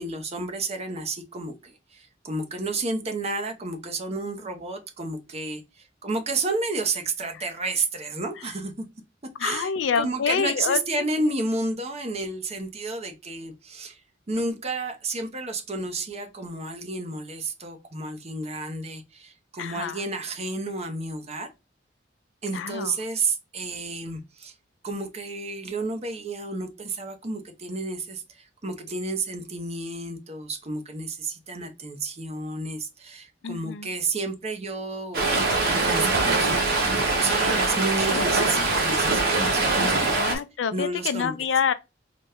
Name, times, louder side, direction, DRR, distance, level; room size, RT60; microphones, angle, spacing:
voice 1, 0.0-8.9 9.4-14.0 14.3-21.5 22.4-24.5 24.8-35.4 35.8-40.4 40.7-41.4, right 3 dB, 35° right, 0.7 m, -31 dB
voice 2, 9.4-11.3 19.6-20.0 22.5-23.0 33.4-33.9 38.1-38.3 39.7-39.8 40.2-41.7, left 6 dB, 85° left, 0.4 m, -27 dB
Stream, 35.1-40.4, right 3 dB, 55° right, 1.2 m, -23 dB
4.0 x 2.2 x 3.4 m
head